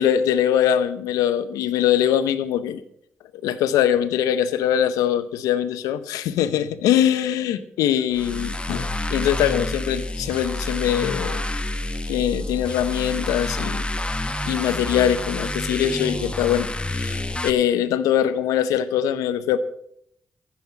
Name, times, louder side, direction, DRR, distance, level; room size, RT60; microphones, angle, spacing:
voice 1, 0.0-2.8 3.4-11.4 12.1-13.9 14.5-19.6, left 10 dB, 80° left, 13 dB, 0.7 m, -22 dB
sound 1, 8.1-17.5, left 1 dB, 20° left, 1.1 m, -28 dB
15.5 x 5.9 x 7.7 m, 0.71 s
hypercardioid pair, 40°, 6 cm